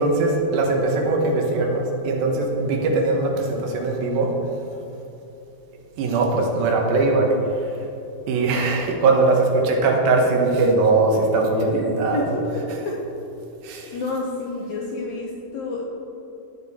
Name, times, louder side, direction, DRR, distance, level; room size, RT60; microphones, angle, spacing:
voice 1, 0.0-4.3 6.0-7.3 8.3-12.2 12.5-12.9 13.6-14.0, right 3 dB, 80° right, 1 dB, 2.8 m, -21 dB
voice 2, 12.1-12.9 13.8-15.8, left 2 dB, 75° left, -3 dB, 1.7 m, -29 dB
12.0 x 6.6 x 3.6 m, 2.9 s
omnidirectional pair, 4.2 m